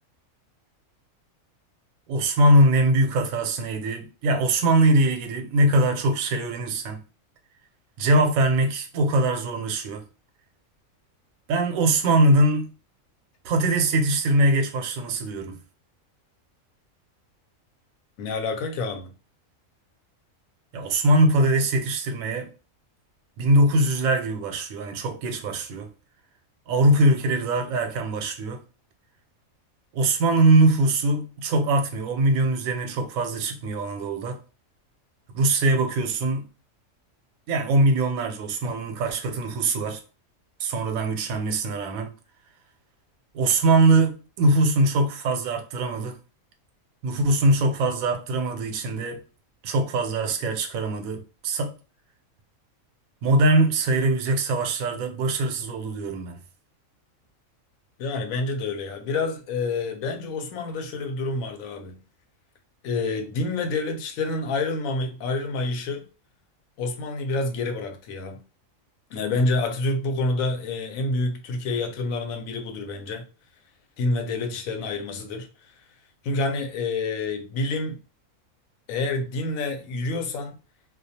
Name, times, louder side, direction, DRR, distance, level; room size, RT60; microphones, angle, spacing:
voice 1, 2.1-7.0 8.0-10.0 11.5-12.7 13.4-15.6 20.7-22.5 23.4-25.9 26.7-28.6 29.9-34.4 35.3-36.5 37.5-40.0 40.6-42.1 43.3-46.2 47.0-49.2 49.6-51.7 53.2-56.4, right 1 dB, 90° right, 1.0 m, -22 dB
voice 2, 18.2-19.1 58.0-62.0 62.8-66.1 66.8-68.4 69.1-73.3 74.0-75.7 76.2-78.0 78.9-80.6, left 3 dB, 85° left, 1.0 m, -28 dB
2.3 x 2.2 x 2.7 m
omnidirectional pair, 1.4 m